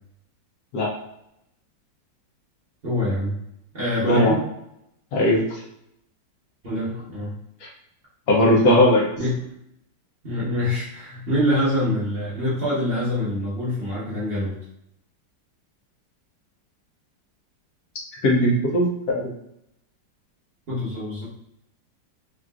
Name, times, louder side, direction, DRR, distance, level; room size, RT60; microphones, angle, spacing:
voice 1, 2.8-3.4 3.7-4.4 6.6-7.3 9.2-9.3 10.2-14.5 20.7-21.2, left 1 dB, 40° right, -8 dB, 1.0 m, -25 dB
voice 2, 4.0-4.4 5.1-5.6 7.6-7.7 8.3-9.1 18.2-19.2, left 1 dB, 70° left, -3 dB, 1.1 m, -18 dB
3.7 x 2.4 x 2.3 m, 0.79 s
omnidirectional pair, 1.9 m